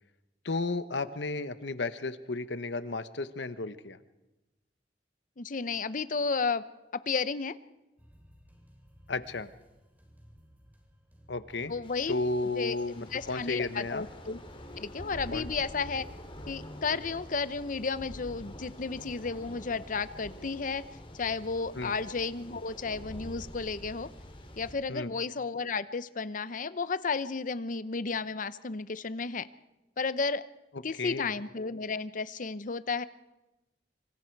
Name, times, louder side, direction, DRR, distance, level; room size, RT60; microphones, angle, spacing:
voice 1, 0.4-4.0 9.1-9.5 11.3-11.7 12.1-14.1 15.3-15.5 21.7-21.9 24.9-25.1 31.0-31.3, left 3 dB, 85° left, 12 dB, 1.1 m, -33 dB
voice 2, 5.4-6.6 6.9-7.5 11.7-12.2 12.5-14.4 14.8-16.1 16.5-20.8 21.1-24.1 24.6-29.5 30.0-30.4 30.8-33.0, left 4 dB, 50° left, 15 dB, 0.7 m, -33 dB
sound 1, 8.0-22.7, equal, 10° right, 3.6 m, -57 dB
Thunder / Rain, 11.8-24.7, left 1 dB, 30° left, 3.0 m, -47 dB
26.0 x 26.0 x 4.7 m, 1.0 s
head